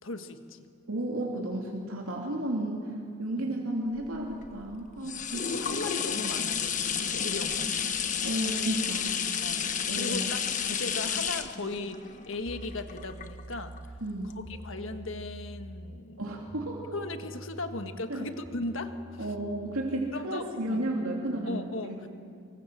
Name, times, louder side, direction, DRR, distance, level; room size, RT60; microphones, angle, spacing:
voice 1, 0.0-0.7 3.4-3.5 5.0-7.8 9.4-13.8 14.4-16.3 16.9-19.3 20.1-20.8 21.5-22.1, left 2 dB, 70° left, 8 dB, 1.5 m, -38 dB
voice 2, 0.9-2.9 3.2-5.8 8.2-9.1 9.9-10.3 14.0-14.4 16.2-16.9 18.1-18.3 19.2-22.0, right 1 dB, 85° right, -1 dB, 3.0 m, -33 dB
sound 1, 4.0-13.8 14.3-14.4, left 7 dB, 35° left, 1.3 m, -31 dB
sound 2, 12.4-20.0, right 1 dB, 15° right, 1.2 m, -46 dB
25.5 x 23.5 x 7.7 m, 2.3 s
head